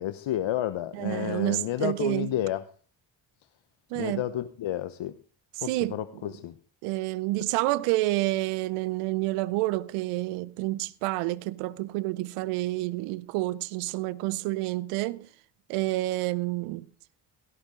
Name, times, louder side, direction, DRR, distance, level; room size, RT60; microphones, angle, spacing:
voice 1, 0.0-2.6 4.0-5.2 5.6-6.6, left 12 dB, 65° left, 1.0 m, -31 dB
voice 2, 0.9-2.3 3.9-4.3 5.6-6.0 6.8-15.3 15.7-16.9, right 18 dB, 85° right, 0.7 m, -29 dB
16.5 x 14.0 x 3.7 m
hypercardioid pair, 40°, 50 cm